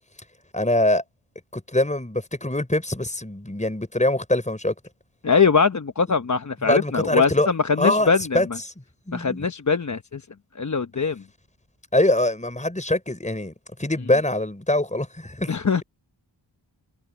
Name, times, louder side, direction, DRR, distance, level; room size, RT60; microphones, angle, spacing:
voice 1, 0.5-1.0 1.5-4.7 6.7-7.5 7.8-8.5 9.1-9.4 11.9-13.5 13.8-15.5, left 1 dB, 15° left, 5.4 m, -23 dB
voice 2, 5.2-8.4 9.1-10.2 10.5-11.2 15.5-15.8, left 5 dB, 40° left, 0.9 m, -22 dB
wide cardioid pair, 65°, 46 cm